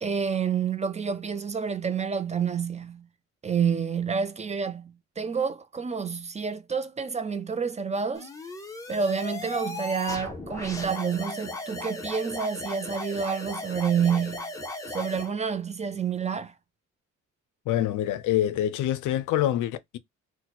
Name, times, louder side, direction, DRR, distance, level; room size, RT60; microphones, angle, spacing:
voice 1, 0.0-3.1 3.4-8.3 8.9-14.4 14.9-16.5, right 6 dB, 25° right, 0.4 m, -28 dB
sound 1, 8.1-15.3, left 2 dB, 10° left, 0.7 m, -36 dB
voice 2, 17.7-20.0, left 12 dB, 80° left, 0.5 m, -26 dB
2.8 x 2.1 x 4.0 m
cardioid pair, 90°, 30 cm